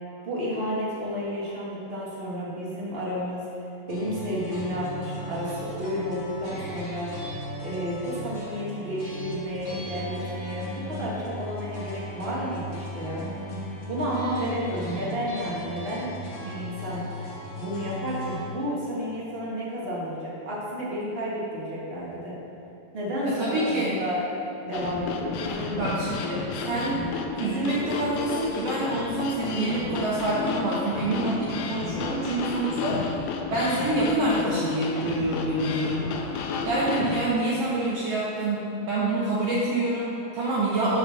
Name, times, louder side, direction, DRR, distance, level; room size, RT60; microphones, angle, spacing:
voice 1, 0.2-7.1 7.6-13.2 13.9-17.0 17.6-22.4 22.9-24.2 24.6-25.9, equal, 40° right, -6 dB, 0.8 m, -31 dB
sound 1, 3.9-18.4, equal, 65° left, 0.8 m, -37 dB
voice 2, 23.2-24.0 25.8-26.4 26.7-27.1 27.3-33.2 33.5-36.3 36.6-41.0, right 2 dB, 70° right, -6 dB, 1.5 m, -27 dB
sound 2, 24.7-37.3, left 4 dB, 90° left, 2.4 m, -32 dB
7.7 x 5.5 x 6.3 m, 2.9 s
omnidirectional pair, 4.0 m